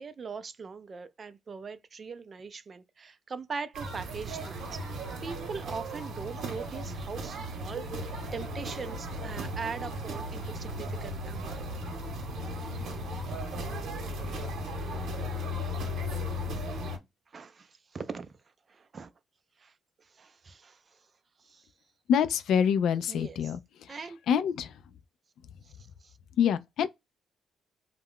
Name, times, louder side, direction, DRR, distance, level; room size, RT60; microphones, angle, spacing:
voice 1, 0.0-11.5 14.1-14.3 17.3-18.3 18.7-19.1 19.6-19.7 20.0-21.0 21.4-21.7 23.1-23.5 23.9-24.2 25.6-26.1, right 5 dB, 40° right, 0.4 m, -41 dB
sound 1, 3.7-17.0, equal, 70° right, 0.8 m, -36 dB
voice 2, 22.1-23.6 24.3-24.7 26.4-26.9, left 8 dB, 75° left, 0.3 m, -25 dB
2.3 x 2.0 x 3.5 m
cardioid pair, 90°, 0 cm